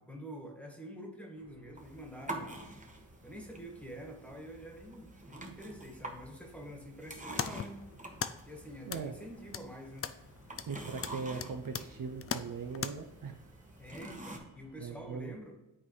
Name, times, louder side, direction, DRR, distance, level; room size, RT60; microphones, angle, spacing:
voice 1, 0.0-2.7 3.2-7.8 8.5-10.1 10.5-11.0 13.8-15.6, equal, 5° left, 1 dB, 1.6 m, -47 dB
sound 1, 1.3-15.3, right 1 dB, 35° right, 1.5 m, -63 dB
sound 2, 1.8-14.4, right 2 dB, 20° right, 1.1 m, -48 dB
sound 3, 7.0-12.9, left 7 dB, 35° left, 0.4 m, -41 dB
voice 2, 8.8-9.2 10.7-13.4 14.8-15.3, right 5 dB, 50° right, 5 dB, 0.6 m, -40 dB
9.8 x 4.0 x 3.2 m, 1.0 s
cardioid pair, 60°, 43 cm